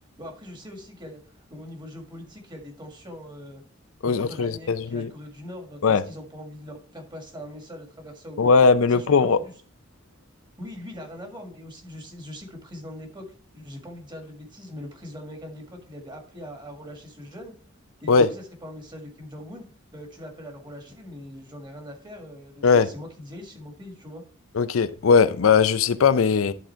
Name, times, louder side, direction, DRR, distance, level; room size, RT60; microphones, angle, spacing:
voice 1, 0.2-3.6 4.0-8.6 8.9-9.4 10.6-13.3 13.5-17.5 18.0-19.7 19.9-24.2, equal, 25° right, 1.8 m, -41 dB
voice 2, 4.0-5.1 5.8-6.0 8.4-9.4 18.1-18.3 22.6-22.9 24.6-26.5, left 5 dB, 90° left, 0.5 m, -19 dB
11.5 x 3.8 x 4.4 m
head